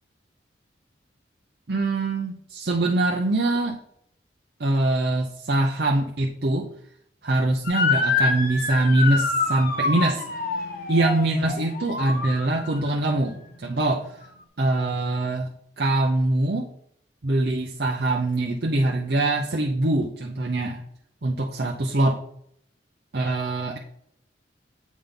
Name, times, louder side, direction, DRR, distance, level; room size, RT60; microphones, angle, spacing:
voice 1, 1.7-3.8 4.6-6.7 7.2-10.2 10.9-14.1 14.6-15.5 15.8-16.7 17.2-20.8 21.2-22.2 23.1-23.8, right 2 dB, 55° right, 0 dB, 0.7 m, -23 dB
Motor vehicle (road) / Siren, 7.6-12.9, left 3 dB, 45° left, 0.9 m, -26 dB
8.4 x 5.3 x 3.8 m, 0.67 s
head